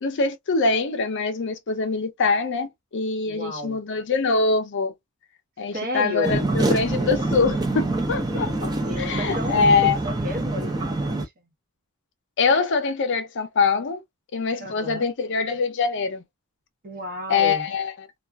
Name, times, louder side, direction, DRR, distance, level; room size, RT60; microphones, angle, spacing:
voice 1, 0.0-4.9 5.6-8.7 9.0-10.0 12.4-14.0 14.3-16.2 17.3-18.1, left 4 dB, 55° left, 0.5 m, -23 dB
voice 2, 3.2-3.8 5.7-6.4 8.5-11.5 14.6-15.1 16.8-17.7, left 1 dB, 40° right, 0.9 m, -32 dB
sound 1, 6.2-11.3, right 2 dB, 20° right, 0.5 m, -25 dB
2.4 x 2.3 x 2.2 m
head